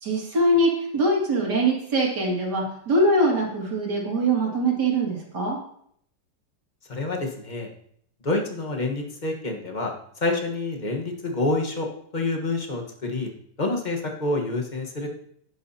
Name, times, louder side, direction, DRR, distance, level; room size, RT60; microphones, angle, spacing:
voice 1, 0.0-5.6, right 1 dB, 60° right, -1 dB, 2.8 m, -23 dB
voice 2, 6.9-7.7 8.2-11.9 12.1-13.3 13.6-15.1, left 2 dB, 25° left, 1 dB, 1.2 m, -27 dB
11.0 x 10.0 x 2.8 m, 0.68 s
omnidirectional pair, 2.0 m